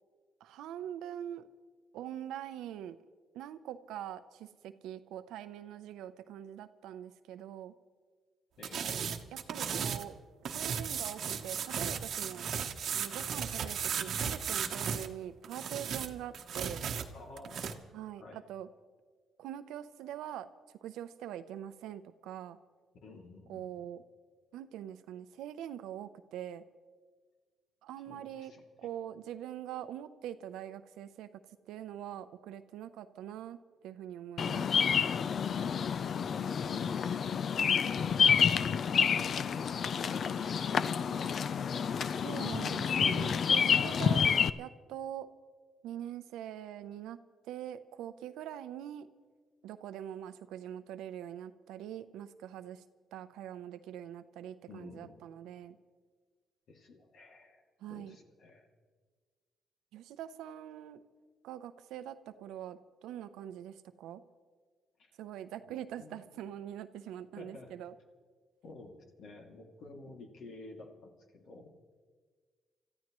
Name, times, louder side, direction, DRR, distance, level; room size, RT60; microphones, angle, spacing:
voice 1, 0.4-1.5 1.9-3.0 3.3-7.7 9.3-10.1 10.5-12.5 12.9-16.8 17.9-18.7 19.4-22.6 23.5-24.0 24.5-26.6 27.8-28.5 28.8-31.3 31.7-34.7 42.2-44.3 44.6-45.3 45.8-49.1 49.6-52.8 53.1-55.8 57.8-58.2 59.9-61.0 61.4-64.2 65.2-67.9, right 11 dB, 90° right, 12 dB, 0.6 m, -43 dB
sound 1, 8.6-10.1 10.5-15.1 15.4-17.7, right 7 dB, 65° right, 1.0 m, -35 dB
voice 2, 17.1-17.9 18.2-18.4 23.0-23.7 28.1-28.6 37.6-39.8 40.1-41.8 54.7-55.2 56.7-57.6 57.9-58.7 65.0-65.1 65.7-66.2 67.4-67.7 68.6-71.7, left 3 dB, 70° left, 2 dB, 2.4 m, -52 dB
Bird vocalization bird call bird song, 34.4-44.5, left 7 dB, 55° left, 0.4 m, -29 dB
29.5 x 14.0 x 3.1 m, 1.5 s
cardioid pair, 90°, 0 cm